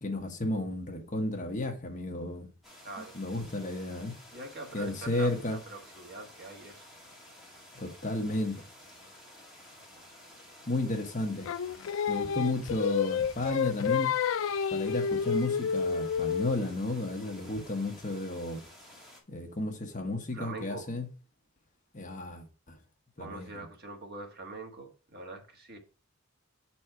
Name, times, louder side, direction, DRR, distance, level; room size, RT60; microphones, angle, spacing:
voice 1, 0.0-2.5 3.1-4.1 4.7-5.6 7.7-8.6 10.7-11.5 12.1-14.1 14.7-18.6 19.3-21.1 21.9-22.8 23.2-23.6, left 2 dB, 40° left, 1.2 m, -33 dB
sound 1, 2.6-19.2, left 1 dB, ahead, 2.0 m, -53 dB
voice 2, 2.8-3.2 4.3-6.9 20.3-20.9 23.2-25.8, right 3 dB, 50° right, 1.5 m, -43 dB
Singing, 11.5-16.7, left 7 dB, 65° left, 0.3 m, -29 dB
7.8 x 4.3 x 4.5 m
head